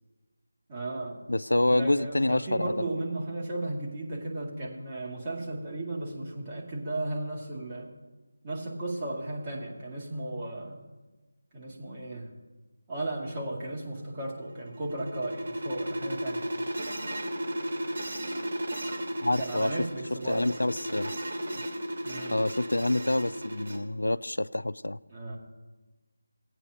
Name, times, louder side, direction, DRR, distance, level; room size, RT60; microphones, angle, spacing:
voice 1, 0.7-1.2 1.7-7.9 8.4-10.8 11.5-12.3 12.9-16.6 19.4-20.6 22.0-22.4 25.1-25.4, right 2 dB, 25° right, -5 dB, 2.2 m, -35 dB
voice 2, 1.3-2.7 19.2-19.7 20.3-21.1 22.3-25.0, left 1 dB, 85° left, 16 dB, 0.3 m, -27 dB
sound 1, 14.3-23.8, right 1 dB, 60° right, 2.4 m, -34 dB
18.0 x 8.9 x 2.8 m, 1.2 s
figure-of-eight pair, 165°, 0 cm